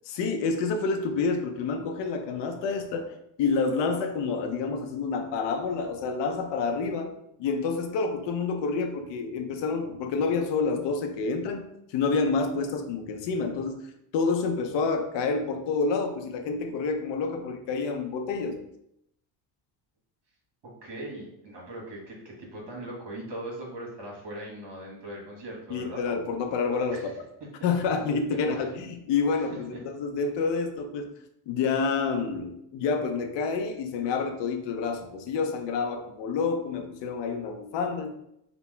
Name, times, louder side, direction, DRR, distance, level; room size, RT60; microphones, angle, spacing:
voice 1, 0.1-7.1 7.4-11.6 11.9-13.8 14.1-18.6 25.7-27.0 27.6-31.1 31.5-38.1, left 4 dB, 60° left, 6 dB, 0.6 m, -28 dB
voice 2, 20.6-26.0 26.9-27.1 27.4-27.5 28.5-28.6 29.3-29.8, right 1 dB, 55° right, -2 dB, 1.4 m, -40 dB
2.8 x 2.1 x 3.3 m, 0.78 s
supercardioid pair, 70°, 50 cm